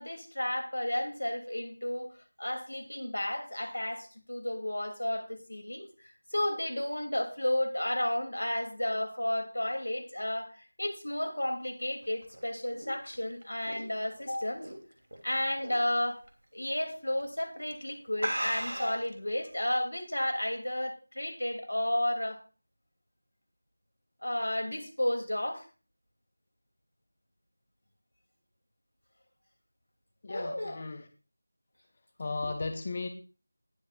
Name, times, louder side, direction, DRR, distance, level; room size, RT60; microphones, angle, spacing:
voice 1, 0.0-2.1 2.4-5.9 6.3-10.5 10.8-14.7 15.2-16.2 16.5-22.4 24.2-25.6 30.3-30.8, left 1 dB, 85° left, 2.9 m, -32 dB
sound 1, 12.0-15.2 15.6-15.9 16.3-16.4 17.2-17.4 17.7-17.8 18.2-19.1, right 1 dB, 90° right, 3.0 m, -36 dB
voice 2, 30.2-31.1 32.2-33.1, left 3 dB, 35° left, 0.9 m, -35 dB
19.5 x 7.3 x 2.5 m
figure-of-eight pair, 170°, 0 cm